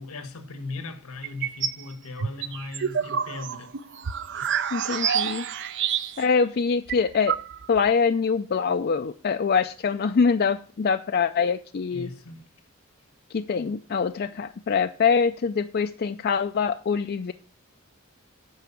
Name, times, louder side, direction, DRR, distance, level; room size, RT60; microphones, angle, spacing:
voice 1, 0.0-3.7 4.3-4.6 11.9-12.5, left 3 dB, 85° left, 1.3 m, -38 dB
sound 1, 1.2-1.8 2.2-6.4 6.6-6.7 6.9-7.9, right 8 dB, 55° right, 0.5 m, -28 dB
voice 2, 4.7-5.5 6.2-7.4 7.7-12.1 13.3-17.3, left 5 dB, 45° left, 0.4 m, -24 dB
9.3 x 4.9 x 6.9 m
head